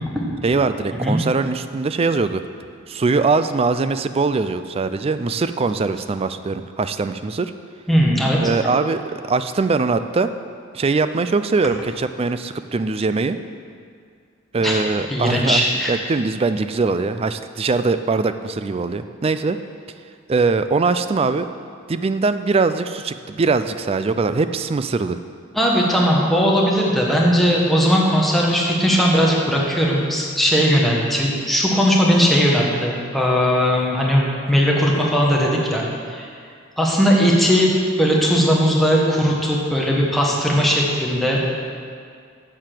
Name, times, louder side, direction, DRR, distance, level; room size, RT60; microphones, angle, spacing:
voice 1, 0.4-2.4 2.9-7.5 8.4-10.3 10.7-13.4 14.5-19.6 20.3-21.5 21.9-25.2, right 4 dB, 30° right, 11 dB, 0.3 m, -21 dB
voice 2, 7.9-8.4 14.6-14.8 15.1-15.9 25.5-35.8 36.1-36.3 36.8-41.5, equal, ahead, -3 dB, 1.4 m, -18 dB
7.5 x 6.8 x 7.6 m, 2.2 s
head